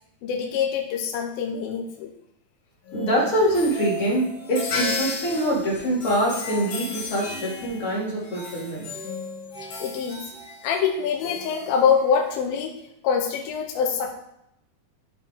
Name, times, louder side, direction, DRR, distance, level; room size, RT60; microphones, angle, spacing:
voice 1, 0.2-2.1 9.6-10.3 10.6-12.7 13.0-14.1, left 6 dB, 80° left, 1 dB, 2.6 m, -24 dB
sound 1, 2.9-12.4, left 2 dB, 55° left, 2.0 m, -34 dB
voice 2, 2.9-8.9, equal, 40° left, -5 dB, 2.9 m, -24 dB
12.5 x 4.5 x 3.6 m, 0.79 s
omnidirectional pair, 4.4 m